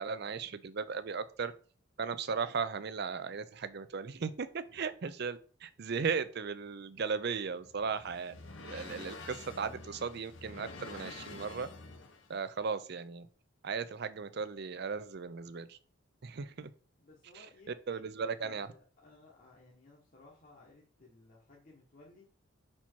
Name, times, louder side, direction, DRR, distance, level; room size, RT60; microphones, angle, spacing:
voice 1, 0.0-1.5 2.0-8.4 8.6-11.7 12.3-13.3 13.6-15.8 16.2-16.7 17.3-17.5 17.9-18.7, right 5 dB, 50° right, 14 dB, 0.5 m, -36 dB
sound 1, 7.4-12.4, left 3 dB, 65° left, 0.9 m, -48 dB
voice 2, 17.0-22.3, left 3 dB, 40° left, -3 dB, 1.1 m, -59 dB
5.7 x 4.4 x 4.4 m, 0.41 s
head